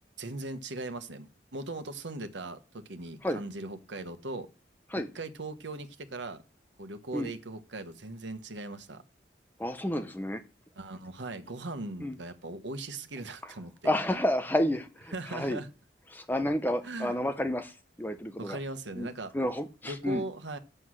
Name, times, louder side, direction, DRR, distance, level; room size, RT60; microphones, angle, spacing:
voice 1, 0.2-4.5 4.9-6.4 6.8-9.0 10.8-13.9 15.1-15.7 16.8-17.2 18.4-19.3 19.8-20.6, right 2 dB, 90° right, 1.2 m, -39 dB
voice 2, 9.6-10.4 12.0-12.2 13.8-15.6 16.1-17.7 18.0-18.6 19.0-19.1 19.3-20.2, left 1 dB, 10° left, 0.8 m, -30 dB
7.8 x 7.7 x 6.3 m
head